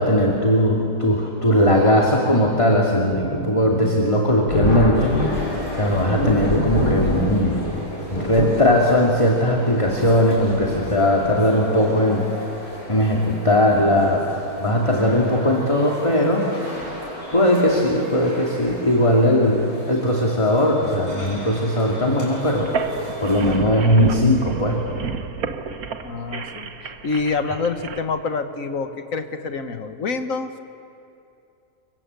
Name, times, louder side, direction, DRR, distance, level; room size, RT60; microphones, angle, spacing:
voice 1, 0.0-5.1 5.7-7.6 8.1-12.3 12.7-14.3 14.6-16.5 17.3-22.7 23.2-24.8, left 1 dB, 20° left, -1 dB, 2.5 m, -19 dB
Thunder, 4.5-11.5 12.5-12.6 14.1-14.4 14.7-14.8 16.8-17.0 17.7-18.0, left 1 dB, 90° left, 4.4 m, -27 dB
sound 1, 4.9-23.6, equal, 35° left, 8.0 m, -36 dB
sound 2, 22.6-28.0, right 5 dB, 65° right, 1.6 m, -30 dB
voice 2, 26.0-30.5, left 4 dB, 60° left, 8 dB, 1.7 m, -27 dB
28.5 x 24.0 x 8.2 m, 2.7 s
omnidirectional pair, 1.7 m